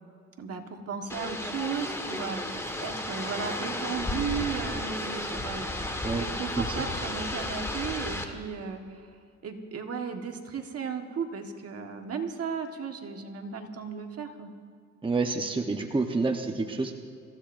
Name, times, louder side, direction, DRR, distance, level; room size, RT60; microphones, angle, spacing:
voice 1, 0.4-9.1 9.4-14.5, right 6 dB, 50° right, 4 dB, 1.6 m, -35 dB
sound 1, 1.1-8.2, left 1 dB, 10° left, 1.6 m, -33 dB
voice 2, 15.0-16.9, right 3 dB, 15° right, 3 dB, 1.1 m, -28 dB
26.5 x 15.0 x 2.6 m, 2.4 s
cardioid pair, 90°, 30 cm